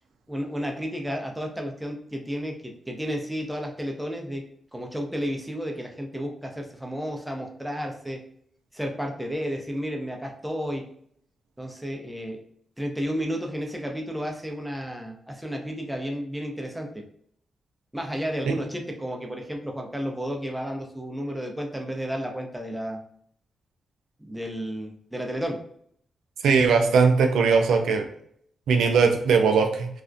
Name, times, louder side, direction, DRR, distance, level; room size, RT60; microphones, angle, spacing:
voice 1, 0.3-4.4 4.7-8.2 8.7-10.8 11.6-12.4 12.8-16.9 17.9-23.0 24.2-25.6, equal, 5° right, 1 dB, 0.6 m, -32 dB
voice 2, 26.4-28.0 28.7-29.9, right 5 dB, 85° right, 5 dB, 0.3 m, -19 dB
2.4 x 2.0 x 2.4 m, 0.65 s
cardioid pair, 60°, 0 cm